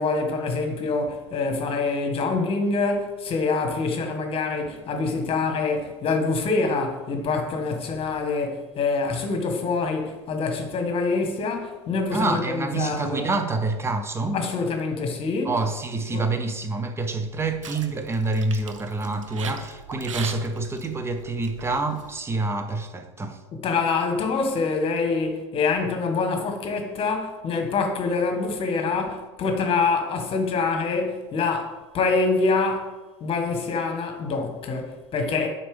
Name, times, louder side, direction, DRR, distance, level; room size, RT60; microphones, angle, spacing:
voice 1, 0.0-13.3 14.3-15.5 16.1-16.2 23.6-32.9 33.2-35.5, left 4 dB, 35° left, 1.3 m, -25 dB
voice 2, 12.1-14.4 15.4-23.4, right 3 dB, 15° right, 0.8 m, -27 dB
sound 1, 17.1-22.2, right 6 dB, 85° right, 0.6 m, -40 dB
8.7 x 4.1 x 3.5 m
hypercardioid pair, 80°, 16 cm